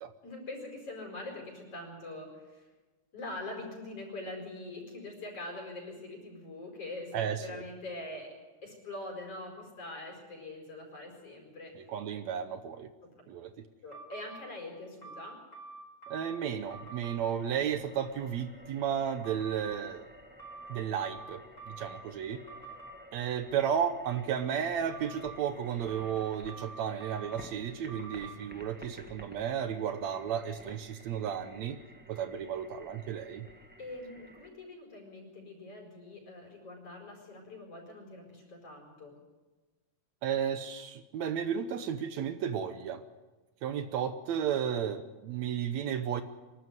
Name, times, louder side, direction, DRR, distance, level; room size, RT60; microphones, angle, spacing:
voice 1, 0.2-2.7 3.1-8.3 8.6-11.7 13.0-13.1 13.8-15.4 33.8-39.1, left 2 dB, 50° left, 1 dB, 5.8 m, -43 dB
voice 2, 7.1-7.6 11.8-12.9 13.3-13.5 16.1-20.1 20.7-22.4 23.1-31.8 32.1-33.5 40.2-43.0 43.6-46.2, right 8 dB, 70° right, 10 dB, 2.0 m, -33 dB
sound 1, 13.9-14.4 15.0-16.4 16.7-17.2 19.2-19.8 20.4-22.0 22.5-22.9 24.9-25.4 25.9-27.4 27.9-28.3, right 3 dB, 25° left, 4.4 m, -47 dB
sound 2, 16.5-34.5, equal, 10° right, 0.4 m, -54 dB
24.0 x 13.0 x 9.6 m, 1.2 s
omnidirectional pair, 3.5 m